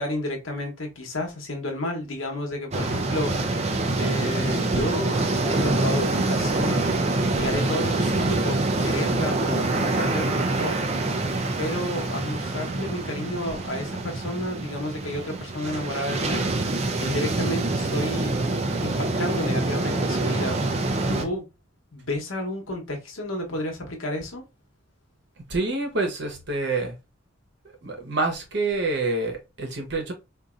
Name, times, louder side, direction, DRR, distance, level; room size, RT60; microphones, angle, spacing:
voice 1, 0.0-6.9 7.4-10.8 11.6-16.7 17.0-18.4 18.8-20.6 21.1-21.5 21.9-24.4, left 1 dB, 80° left, 1.0 m, -31 dB
sound 1, 2.7-21.2, right 2 dB, 30° right, 0.4 m, -25 dB
voice 2, 25.5-27.0 27.6-30.1, right 3 dB, 55° right, 0.9 m, -27 dB
4.1 x 2.6 x 2.4 m
head